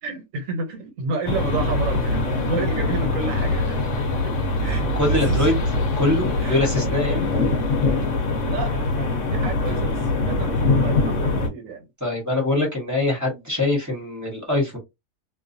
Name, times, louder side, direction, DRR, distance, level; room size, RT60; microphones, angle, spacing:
voice 1, 0.0-3.8 4.2-4.3 4.6-5.5 6.4-6.6 8.3-11.9, right 3 dB, 75° right, 1.2 m, -31 dB
sound 1, 1.3-11.5, left 2 dB, 70° left, 1.0 m, -23 dB
voice 2, 5.0-5.5 6.0-7.3 12.0-14.8, left 2 dB, 15° right, 0.9 m, -23 dB
2.5 x 2.3 x 2.6 m
omnidirectional pair, 1.4 m